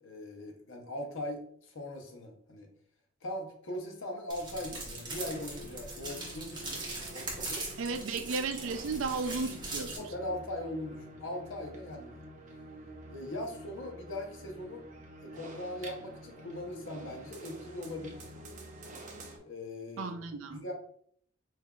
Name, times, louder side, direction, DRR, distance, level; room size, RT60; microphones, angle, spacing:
voice 1, 0.0-2.7 3.2-6.8 7.1-7.7 10.0-12.2 13.1-14.9 15.2-18.3 19.4-20.1 20.5-20.7, left 1 dB, 70° left, 2 dB, 0.9 m, -40 dB
sound 1, 4.3-10.0, right 2 dB, 25° right, 1.1 m, -41 dB
sound 2, 4.7-19.4, right 1 dB, 40° right, 0.7 m, -48 dB
voice 2, 7.8-10.0 20.0-20.7, right 4 dB, 80° right, 7 dB, 0.5 m, -34 dB
5.7 x 2.6 x 2.3 m, 0.62 s
head